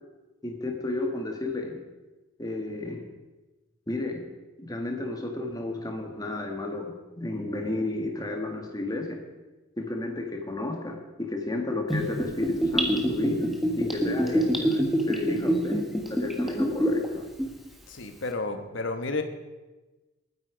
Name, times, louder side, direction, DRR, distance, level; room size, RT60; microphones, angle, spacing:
voice 1, 0.4-1.8 2.4-3.0 3.9-4.3 4.6-9.2 9.8-13.5 13.8-17.2, left 2 dB, 20° left, 3 dB, 1.7 m, -32 dB
Gurgling / Bathtub (filling or washing), 11.9-17.1 17.4-17.5, equal, ahead, 1.5 m, -25 dB
voice 2, 17.9-19.2, left 3 dB, 65° left, 7 dB, 1.2 m, -31 dB
20.5 x 9.7 x 5.1 m, 1.1 s
head